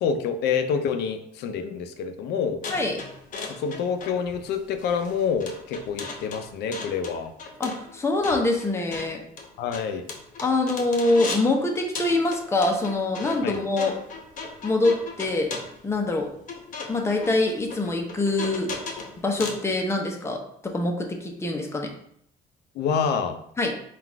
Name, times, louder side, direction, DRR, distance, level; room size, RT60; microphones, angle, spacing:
voice 1, 0.0-2.6 3.6-7.3 9.6-10.1 13.4-13.6 22.7-23.4, left 6 dB, 75° left, 7 dB, 0.6 m, -27 dB
sound 1, 2.6-11.6 11.9-19.7, left 3 dB, 50° left, 0.9 m, -37 dB
voice 2, 2.7-3.1 7.6-9.2 10.4-13.9 14.6-15.5 15.8-16.3 16.9-18.7 19.2-21.9 23.6-23.7, left 2 dB, 15° left, 1 dB, 0.8 m, -24 dB
3.8 x 2.5 x 4.5 m, 0.69 s
cardioid pair, 110°, 17 cm